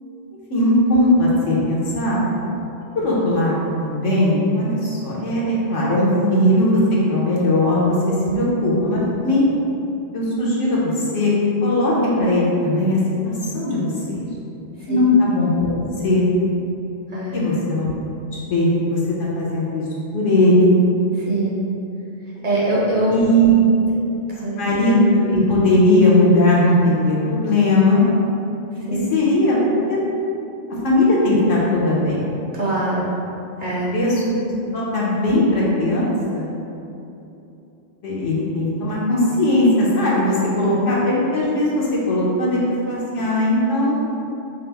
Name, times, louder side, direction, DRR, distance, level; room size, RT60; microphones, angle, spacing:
voice 1, 0.5-2.3 2.9-9.4 10.1-11.3 11.6-14.3 14.9-15.7 16.0-16.2 17.3-17.9 18.5-19.8 20.1-20.7 23.1-23.6 24.6-28.0 29.1-29.6 29.9-30.0 30.8-32.3 33.9-36.5 38.0-44.0, left 1 dB, 80° left, -6 dB, 1.2 m, -18 dB
voice 2, 21.3-21.6 22.4-23.2 23.6-24.0 24.4-24.6 28.9-29.1 32.5-33.1 33.6-33.9, right 1 dB, 45° right, -7 dB, 0.8 m, -23 dB
5.3 x 2.0 x 3.3 m, 2.8 s
omnidirectional pair, 1.3 m